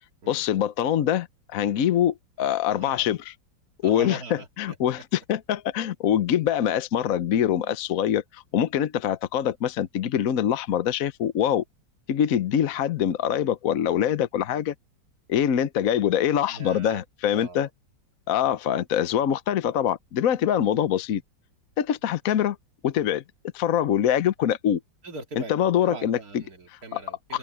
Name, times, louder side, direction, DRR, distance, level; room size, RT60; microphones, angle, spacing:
voice 1, 0.3-1.3 1.5-3.3 3.8-11.6 12.1-14.7 15.3-17.7 18.3-21.2 21.8-22.6 22.8-23.2 23.5-24.8 25.4-26.4 26.9-27.0 27.3-27.4, left 10 dB, 55° left, 1.1 m, -24 dB
voice 2, 2.4-3.1 3.8-4.5 16.5-17.0 17.3-17.7 25.0-25.5 25.8-27.4, right 3 dB, 50° right, 2.7 m, -41 dB
open air
omnidirectional pair, 2.0 m